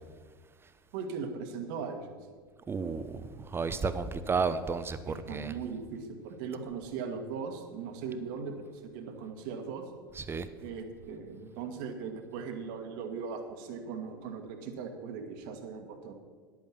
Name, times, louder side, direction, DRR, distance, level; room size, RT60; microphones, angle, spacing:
voice 1, 0.9-2.2 5.1-9.8 10.6-16.1, right 5 dB, 60° right, 5 dB, 1.7 m, -39 dB
voice 2, 2.7-5.6 10.1-10.5, right 5 dB, 20° right, 11 dB, 0.9 m, -32 dB
10.0 x 8.9 x 7.3 m, 1.6 s
hypercardioid pair, 85°, 12 cm